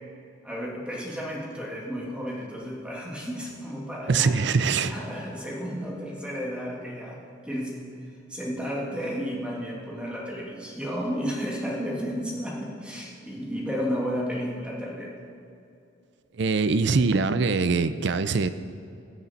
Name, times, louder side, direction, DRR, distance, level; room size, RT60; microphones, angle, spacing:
voice 1, 0.4-4.3 4.8-7.7 8.3-15.1, equal, 5° right, -4 dB, 1.7 m, -32 dB
voice 2, 4.1-4.9 16.4-18.5, right 4 dB, 55° right, 12 dB, 0.5 m, -23 dB
19.0 x 6.8 x 4.1 m, 2.6 s
head